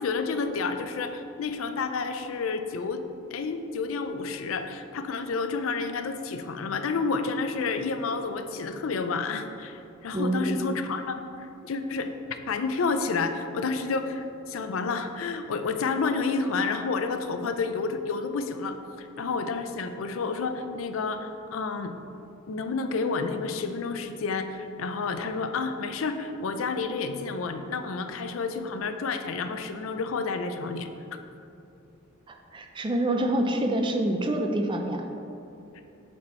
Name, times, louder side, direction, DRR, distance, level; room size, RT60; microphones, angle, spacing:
voice 1, 0.0-3.0 3.3-12.1 12.5-21.9 22.5-30.9, left 4 dB, 80° left, 8 dB, 0.4 m, -30 dB
voice 2, 10.1-10.6 32.3-35.0, right 1 dB, 25° right, 4 dB, 0.5 m, -27 dB
7.4 x 4.3 x 4.3 m, 2.7 s
head